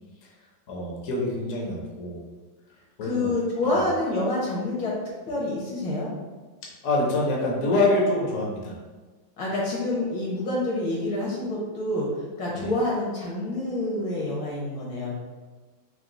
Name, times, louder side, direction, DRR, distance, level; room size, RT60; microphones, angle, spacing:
voice 1, 0.7-2.2 3.0-3.3 3.7-3.8 6.8-8.8 12.5-12.7, left 2 dB, 55° left, -3 dB, 1.0 m, -25 dB
voice 2, 3.0-4.9 5.3-6.1 9.4-12.1 12.4-15.1, left 2 dB, 75° left, -5 dB, 1.9 m, -27 dB
4.7 x 2.1 x 3.7 m, 1.3 s
omnidirectional pair, 2.1 m